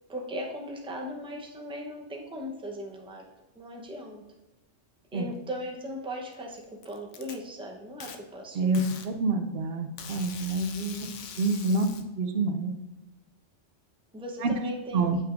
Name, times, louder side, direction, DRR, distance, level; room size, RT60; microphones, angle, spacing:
voice 1, 0.1-3.3 3.6-4.2 5.1-8.8 14.1-15.0, equal, 5° right, -1 dB, 0.7 m, -38 dB
Packing tape duct tape, 6.3-7.3 8.0-8.2 8.7-9.1 10.0-12.0, left 7 dB, 80° left, 0.9 m, -43 dB
voice 2, 8.5-11.0 11.4-11.9 12.2-12.7 14.4-14.5 14.9-15.2, right 3 dB, 60° right, 7 dB, 0.8 m, -27 dB
8.0 x 5.8 x 2.5 m, 0.98 s
omnidirectional pair, 1.2 m